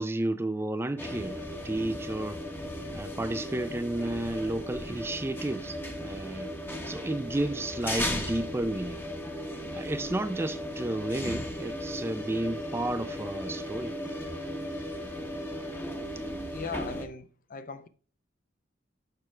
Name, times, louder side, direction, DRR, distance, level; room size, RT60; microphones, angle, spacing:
voice 1, 0.0-2.4 2.9-9.0 9.7-13.9 16.4-16.5, right 1 dB, 15° right, 0.4 m, -32 dB
sound 1, 1.0-17.1, equal, 10° left, 1.0 m, -36 dB
voice 2, 16.5-17.9, left 4 dB, 45° left, 0.7 m, -39 dB
6.7 x 6.0 x 3.2 m
head